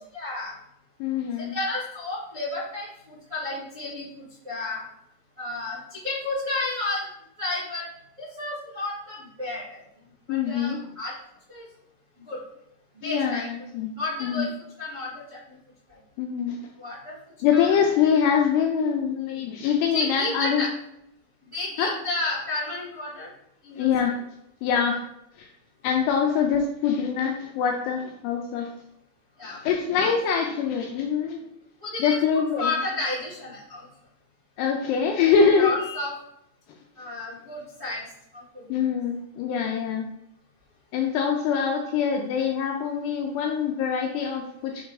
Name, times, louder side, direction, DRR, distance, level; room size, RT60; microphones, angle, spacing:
voice 1, 0.1-0.5 1.4-4.8 5.4-7.0 7.4-7.8 8.2-9.8 10.3-11.2 11.5-11.7 12.2-12.4 12.9-13.5 14.0-14.5 14.8-15.6 15.9-16.0 16.8-17.1 17.5-17.7 19.9-20.7 21.5-23.3 23.6-23.9 29.4-29.6 29.8-30.2 31.8-33.9 35.2-36.1 37.0-38.0 38.3-38.8, left 2 dB, 50° right, -9 dB, 0.9 m, -32 dB
voice 2, 1.0-1.5 10.3-10.8 13.0-13.9 14.2-14.5 16.2-16.6 17.4-20.6 21.8-21.9 23.8-24.2 24.6-25.0 25.4-25.5 25.8-28.7 29.4-31.4 32.0-32.7 34.6-35.7 38.7-40.1 40.9-44.9, left 7 dB, 85° left, 2 dB, 2.4 m, -24 dB
6.5 x 3.5 x 4.7 m, 0.79 s
omnidirectional pair, 5.3 m